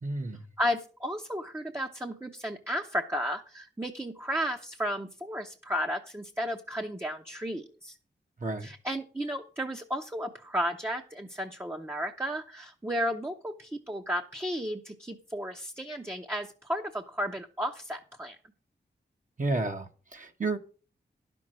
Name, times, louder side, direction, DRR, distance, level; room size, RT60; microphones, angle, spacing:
voice 1, 0.0-0.5 8.4-8.7 19.4-20.6, right 2 dB, 45° right, 1.1 m, -31 dB
voice 2, 0.6-8.0 8.6-18.4, equal, 10° right, 0.8 m, -33 dB
11.5 x 6.1 x 6.2 m
wide cardioid pair, 120°, 19 cm